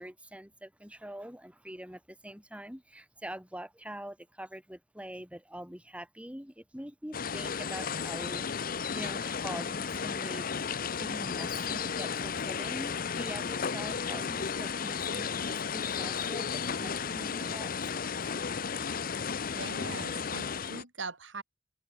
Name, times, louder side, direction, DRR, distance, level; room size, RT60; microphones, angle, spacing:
voice 1, 0.0-17.9 18.8-19.2, right 1 dB, 5° right, 4.2 m, -44 dB
sound 1, 7.1-20.8, left 6 dB, 50° left, 0.7 m, -34 dB
voice 2, 19.5-21.4, right 4 dB, 75° right, 6.6 m, -41 dB
open air
head